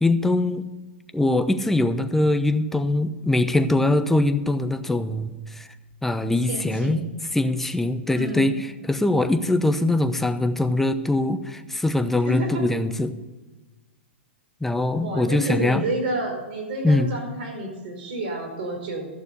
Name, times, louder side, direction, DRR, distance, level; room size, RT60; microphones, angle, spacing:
voice 1, 0.0-0.7 1.1-5.7 6.0-7.0 7.3-8.5 8.9-13.2 14.6-15.8 16.8-17.1, left 2 dB, 5° left, 9 dB, 0.7 m, -22 dB
voice 2, 6.5-7.0 8.1-8.5 12.2-12.6 15.0-19.1, right 1 dB, 55° right, 1 dB, 4.6 m, -29 dB
14.0 x 6.7 x 6.9 m, 1.2 s
hypercardioid pair, 120°, 7 cm